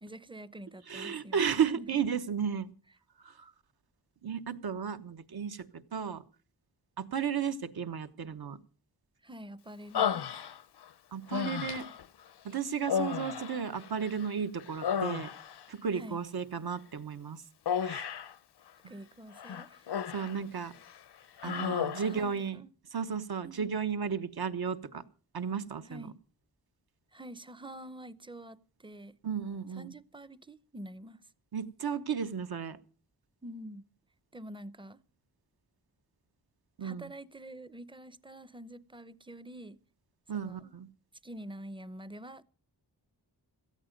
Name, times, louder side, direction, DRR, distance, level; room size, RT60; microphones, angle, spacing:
voice 1, 0.0-1.5 1.8-1.9 9.2-10.4 15.9-16.2 18.9-19.9 21.4-21.8 22.1-22.7 23.4-23.7 25.9-26.2 27.1-29.2 29.7-31.3 33.4-33.8 34.3-35.0 36.8-39.8 40.3-40.7 41.2-42.4, right 1 dB, 10° right, 0.6 m, -47 dB
voice 2, 0.9-2.7 3.2-3.5 4.2-6.2 7.0-8.6 11.1-11.9 12.4-15.3 15.7-17.4 17.8-18.0 20.1-20.7 21.4-22.6 22.9-25.0 25.3-26.1 29.2-29.9 31.5-32.8 36.8-37.1 40.3-40.9, right 7 dB, 60° right, 1.1 m, -34 dB
Human voice, 9.9-10.8 11.3-12.0 12.8-14.3 14.6-15.7 17.7-18.3 19.4-20.4 20.7-21.0 21.4-22.2, left 8 dB, 75° left, 0.7 m, -33 dB
17.0 x 13.5 x 5.2 m
wide cardioid pair, 105°, 41 cm